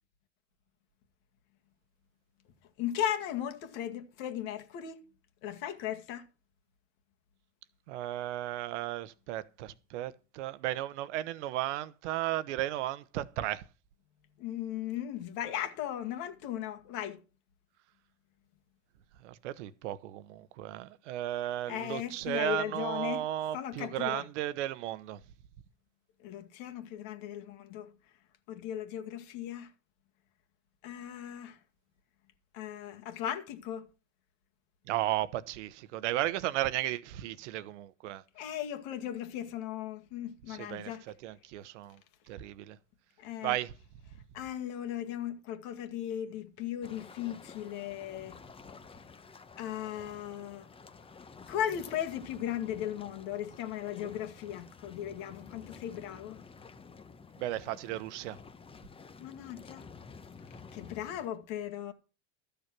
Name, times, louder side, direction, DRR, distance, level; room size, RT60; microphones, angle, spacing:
voice 1, 2.8-5.0 5.4-6.3 14.4-17.2 21.7-23.2 23.5-24.3 26.2-28.0 28.5-29.7 30.8-31.6 32.5-33.9 38.3-41.1 43.2-43.6 44.3-48.4 49.6-50.7 51.5-56.4 59.2-59.9 60.7-61.9, left 11 dB, 60° left, 2.1 m, -37 dB
voice 2, 7.9-13.6 19.2-25.2 34.9-38.2 40.5-42.0 42.3-42.8 43.4-43.7 57.4-58.4, right 14 dB, 70° right, 1.0 m, -35 dB
sound 1, 46.8-61.3, left 5 dB, 15° left, 0.9 m, -51 dB
13.5 x 6.8 x 6.0 m
hypercardioid pair, 105°, 36 cm